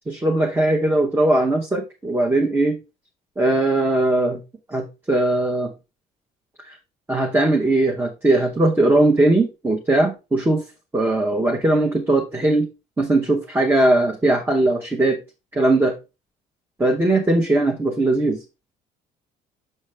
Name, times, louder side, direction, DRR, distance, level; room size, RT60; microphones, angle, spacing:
voice 1, 0.1-2.8 3.4-4.4 4.7-5.7 6.6-6.8 7.1-10.6 10.9-12.7 13.0-15.2 15.5-16.0 16.8-18.4, right 2 dB, 15° right, 2 dB, 0.8 m, -19 dB
6.6 x 4.8 x 3.2 m, 0.27 s
cardioid pair, 110°, 17 cm